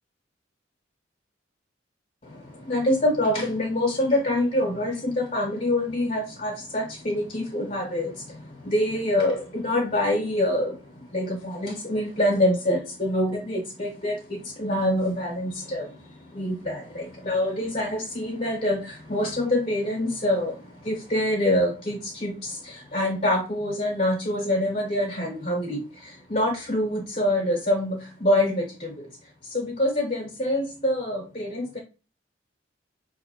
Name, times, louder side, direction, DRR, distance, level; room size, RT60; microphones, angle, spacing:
voice 1, 2.7-8.1 8.6-10.7 11.1-14.1 14.6-15.9 16.4-18.8 19.1-20.5 20.8-22.4 22.9-25.8 26.3-28.9 29.5-31.8, left 1 dB, 35° left, -1 dB, 1.0 m, -25 dB
5.5 x 2.7 x 2.8 m, 0.33 s
head